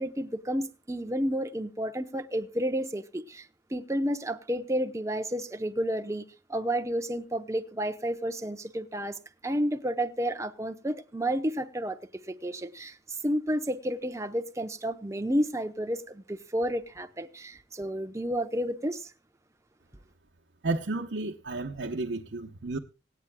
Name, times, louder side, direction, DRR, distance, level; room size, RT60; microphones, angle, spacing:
voice 1, 0.0-6.2 6.5-9.2 9.4-12.0 12.3-13.0 13.2-19.1, equal, 15° right, 0.8 m, -31 dB
voice 2, 20.6-22.8, right 2 dB, 80° right, 0.9 m, -32 dB
25.5 x 9.0 x 2.2 m
head